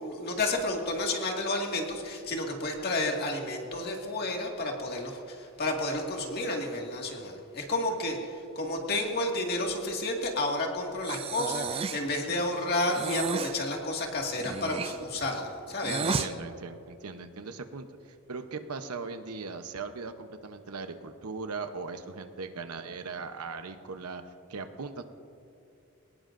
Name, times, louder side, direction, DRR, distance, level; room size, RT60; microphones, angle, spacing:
voice 1, 0.0-16.3, left 2 dB, 45° left, 1 dB, 2.0 m, -31 dB
Breathing, 11.0-12.1 12.9-13.6 14.3-16.3, right 5 dB, 25° right, 0.3 m, -33 dB
voice 2, 16.0-25.0, right 4 dB, 80° right, 8 dB, 0.9 m, -39 dB
22.5 x 19.0 x 2.6 m, 2.6 s
head